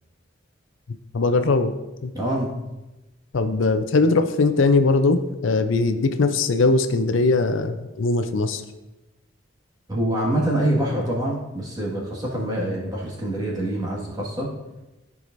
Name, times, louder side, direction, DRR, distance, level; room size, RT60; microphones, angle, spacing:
voice 1, 1.1-1.7 2.0-2.1 3.3-8.6, left 3 dB, 70° left, 8 dB, 0.5 m, -20 dB
voice 2, 2.1-2.5 9.9-14.5, right 1 dB, 20° right, -4 dB, 1.7 m, -25 dB
13.5 x 4.8 x 2.6 m, 1.0 s
head